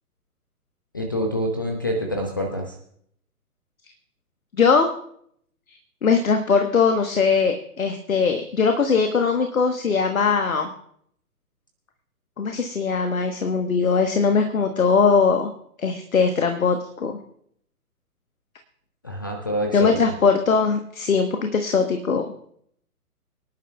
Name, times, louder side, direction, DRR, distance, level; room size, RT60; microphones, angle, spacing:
voice 1, 0.9-2.8 19.0-20.0, equal, 15° left, 3 dB, 0.5 m, -26 dB
voice 2, 4.6-4.9 6.0-10.7 12.4-15.5 15.8-17.2 19.7-22.3, left 5 dB, 60° left, 6 dB, 1.3 m, -20 dB
24.5 x 10.5 x 2.3 m, 0.67 s
figure-of-eight pair, 130°, 46 cm